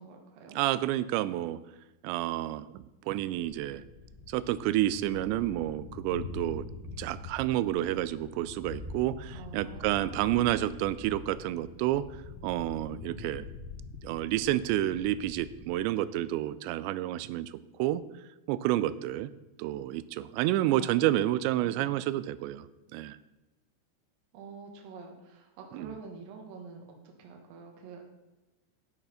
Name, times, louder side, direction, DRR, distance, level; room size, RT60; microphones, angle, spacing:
voice 1, 0.0-0.6 9.3-10.4 20.7-21.2 24.3-28.0, right 4 dB, 60° right, 1 dB, 2.8 m, -47 dB
voice 2, 0.5-1.6 2.0-3.8 4.3-6.7 7.0-12.0 12.4-13.5 14.0-18.0 18.5-19.3 19.6-22.7 22.9-23.2 25.7-26.0, right 14 dB, 85° right, 15 dB, 2.8 m, -29 dB
Thunder, 3.3-15.9, left 3 dB, 75° left, 3.1 m, -45 dB
11.0 x 6.6 x 5.6 m, 1.1 s
omnidirectional pair, 5.1 m